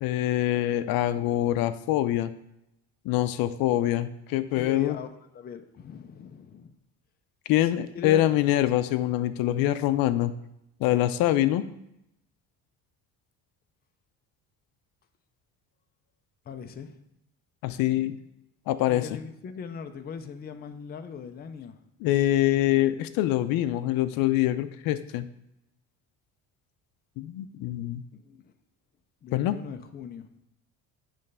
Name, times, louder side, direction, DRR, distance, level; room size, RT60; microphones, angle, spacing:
voice 1, 0.0-2.3 3.1-5.0 7.5-10.3 10.8-11.6 17.6-18.2 18.7-19.1 22.0-25.3 27.2-28.0 29.3-29.6, left 13 dB, 80° left, 12 dB, 0.5 m, -24 dB
voice 2, 4.6-6.7 7.6-7.7 7.9-8.3 16.5-17.0 18.9-21.8 28.1-28.4 29.2-30.3, left 6 dB, 30° left, 7 dB, 0.5 m, -40 dB
8.9 x 3.2 x 5.4 m, 0.83 s
cardioid pair, 145°, 34 cm